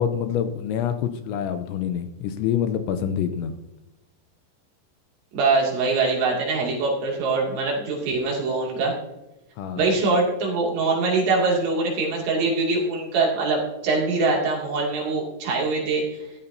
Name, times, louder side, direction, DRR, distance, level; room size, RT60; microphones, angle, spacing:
voice 1, 0.0-3.5 9.6-9.9, left 8 dB, 80° left, 8 dB, 2.8 m, -26 dB
voice 2, 5.3-8.9 9.8-16.0, right 3 dB, 65° right, -2 dB, 4.6 m, -23 dB
14.0 x 13.0 x 2.7 m, 0.98 s
omnidirectional pair, 5.7 m